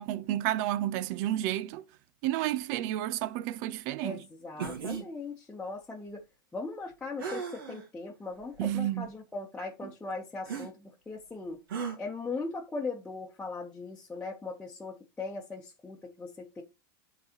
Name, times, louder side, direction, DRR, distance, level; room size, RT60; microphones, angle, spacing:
voice 1, 0.0-1.8 2.2-4.2 8.6-9.1, right 13 dB, 55° right, 0.7 m, -31 dB
voice 2, 4.0-6.2 6.5-11.6 12.0-16.6, left 3 dB, 10° left, 1.1 m, -39 dB
sound 1, 4.6-5.1 7.2-7.8 8.5-8.6 10.5-10.7 11.7-12.0, right 6 dB, 75° right, 2.3 m, -36 dB
11.5 x 4.0 x 3.0 m
hypercardioid pair, 120°, 12 cm